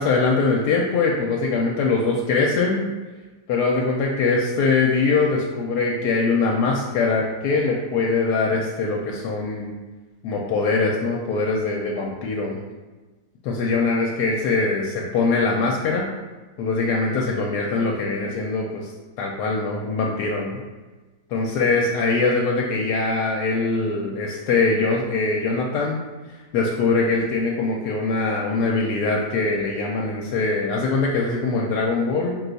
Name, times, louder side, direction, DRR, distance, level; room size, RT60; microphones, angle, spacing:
voice 1, 0.0-2.8 3.5-9.7 10.2-12.6 13.4-16.1 16.6-18.9 19.2-20.6 21.3-26.0 26.5-32.4, left 3 dB, 85° left, -2 dB, 1.1 m, -22 dB
4.5 x 2.3 x 3.9 m, 1.3 s
omnidirectional pair, 1.7 m